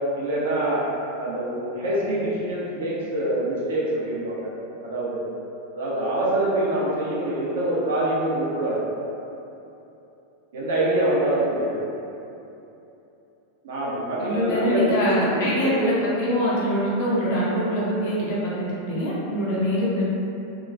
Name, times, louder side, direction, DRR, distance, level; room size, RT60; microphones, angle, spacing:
voice 1, 0.2-0.8 1.2-4.5 4.8-5.2 5.7-8.8 10.5-11.8 13.6-15.9, right 1 dB, 60° right, -6 dB, 0.6 m, -25 dB
voice 2, 14.2-20.1, equal, 50° left, -7 dB, 0.5 m, -24 dB
2.9 x 2.2 x 2.4 m, 2.9 s
figure-of-eight pair, 90°, 0 cm